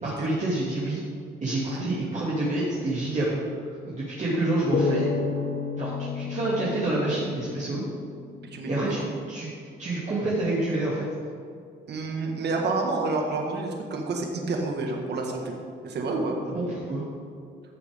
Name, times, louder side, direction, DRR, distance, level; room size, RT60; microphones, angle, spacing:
voice 1, 0.0-1.0 1.4-3.4 3.8-5.1 5.8-7.8 8.7-9.0 9.3-9.5 9.8-11.1 16.5-17.0, right 2 dB, 35° right, -8 dB, 2.7 m, -28 dB
sound 1, 4.7-8.1, left 4 dB, 40° left, 0.9 m, -30 dB
voice 2, 8.5-9.1 11.9-15.5 15.8-16.4, right 3 dB, 60° right, 1 dB, 1.8 m, -29 dB
14.5 x 7.1 x 3.8 m, 2.3 s
cardioid pair, 90°, 20 cm